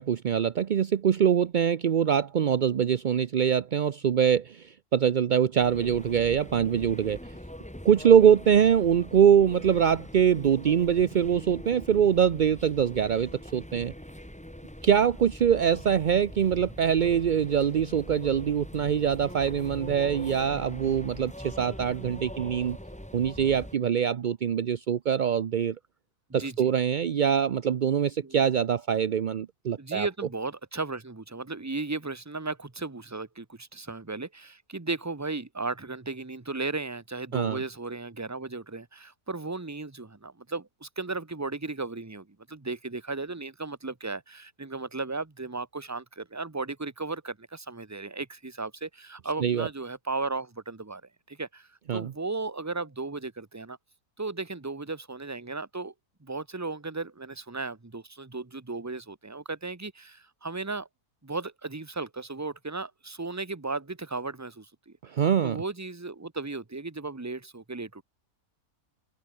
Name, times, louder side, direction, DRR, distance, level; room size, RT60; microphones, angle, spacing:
voice 1, 0.0-7.2 7.8-13.9 14.8-22.8 23.1-25.8 26.3-30.1 37.3-37.6 49.4-49.7 51.9-52.1 65.1-65.6, right 8 dB, 60° right, 0.5 m, -23 dB
sound 1, 5.6-23.8, equal, 5° left, 2.4 m, -43 dB
voice 2, 26.3-26.7 28.2-28.4 29.8-51.0 51.3-53.8 54.2-55.9 56.2-60.9 61.2-65.0 65.4-68.0, right 3 dB, 15° right, 1.0 m, -35 dB
open air
omnidirectional pair, 1.6 m